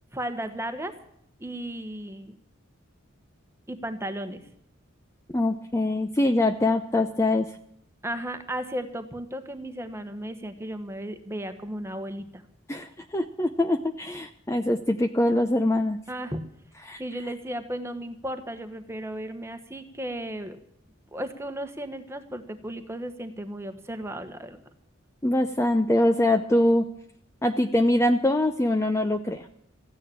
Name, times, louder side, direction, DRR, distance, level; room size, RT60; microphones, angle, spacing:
voice 1, 0.1-0.9 1.4-2.3 3.7-4.5 8.0-12.4 16.1-16.4 17.0-20.6 21.1-24.6, right 1 dB, 15° right, 8 dB, 1.3 m, -35 dB
voice 2, 5.3-7.5 12.7-16.0 16.9-17.0 25.2-26.9 27.4-29.5, left 1 dB, 15° left, 7 dB, 0.6 m, -23 dB
15.0 x 9.7 x 8.8 m, 0.72 s
head